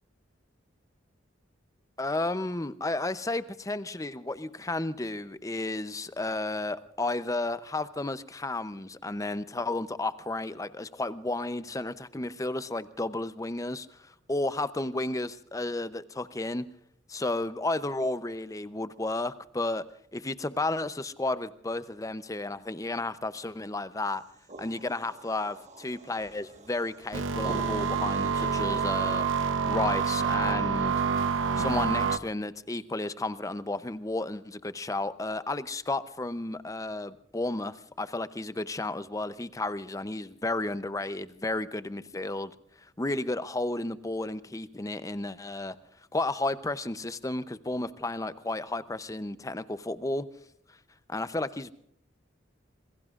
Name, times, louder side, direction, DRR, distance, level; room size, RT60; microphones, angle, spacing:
voice 1, 2.0-16.6 17.1-19.8 20.1-24.2 24.6-29.3 29.6-30.9 31.6-42.5 42.8-45.8 46.1-50.3 51.1-51.7, left 2 dB, 15° left, 13 dB, 0.6 m, -32 dB
sound 1, 24.1-29.1, right 3 dB, 35° right, 1.5 m, -45 dB
sound 2, 27.1-32.2, right 6 dB, 80° right, 0.9 m, -27 dB
26.5 x 21.5 x 2.5 m, 0.73 s
head